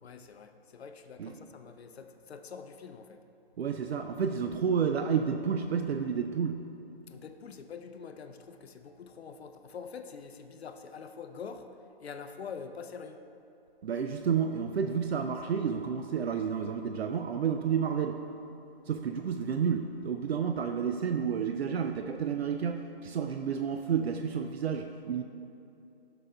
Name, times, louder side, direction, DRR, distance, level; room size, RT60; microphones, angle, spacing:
voice 1, 0.0-3.2 7.1-11.7 12.0-13.2, left 6 dB, 80° left, 7 dB, 0.6 m, -45 dB
voice 2, 3.6-6.6 13.8-18.2 18.9-25.2, right 7 dB, 80° right, 6 dB, 0.5 m, -30 dB
9.8 x 6.7 x 2.2 m, 2.7 s
hypercardioid pair, 150°, 31 cm